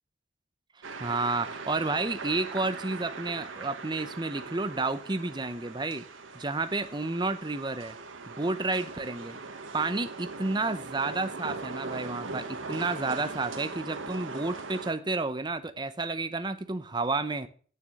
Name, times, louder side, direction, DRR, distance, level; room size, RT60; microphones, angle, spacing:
sound 1, 0.8-14.9, right 3 dB, 90° right, 1.4 m, -40 dB
voice 1, 1.0-6.0 6.3-7.9 8.3-9.4 9.7-17.5, right 3 dB, 20° right, 10 dB, 0.7 m, -31 dB
8.6 x 7.1 x 6.3 m, 0.43 s
head